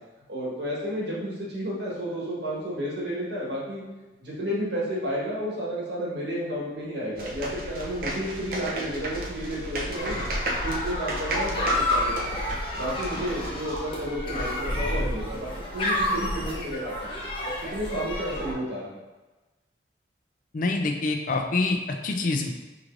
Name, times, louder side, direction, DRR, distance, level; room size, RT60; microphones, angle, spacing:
voice 1, 0.3-3.8 4.2-10.2 10.5-12.4 12.7-17.1 17.7-19.0, equal, 65° right, -6 dB, 1.3 m, -31 dB
sound 1, 7.2-13.8, right 1 dB, 50° right, 0.5 m, -34 dB
sound 2, 10.0-18.5, left 1 dB, 25° left, 0.8 m, -30 dB
voice 2, 20.5-22.5, left 3 dB, 45° left, 4 dB, 0.4 m, -26 dB
4.8 x 3.0 x 2.5 m, 1.2 s
head